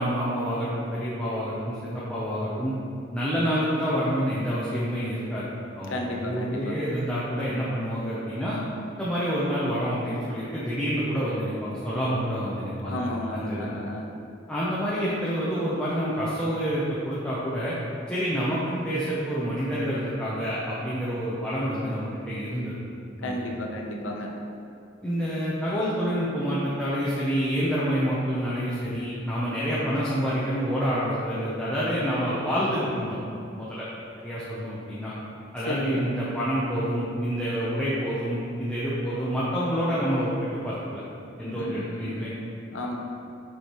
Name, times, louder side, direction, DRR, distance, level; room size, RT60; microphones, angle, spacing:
voice 1, 0.0-2.7 3.1-5.5 5.7-8.6 9.0-13.8 14.5-17.8 18.1-22.7 23.2-23.5 25.0-33.2 33.5-33.9 34.2-35.1 35.5-41.0 41.4-42.3, equal, 5° left, -9 dB, 0.7 m, -28 dB
voice 2, 5.9-6.8 12.9-14.0 23.2-24.3 35.7-35.9 41.5-42.2 42.7-43.0, left 1 dB, 80° left, 0 dB, 0.8 m, -32 dB
6.8 x 5.1 x 3.1 m, 2.6 s
head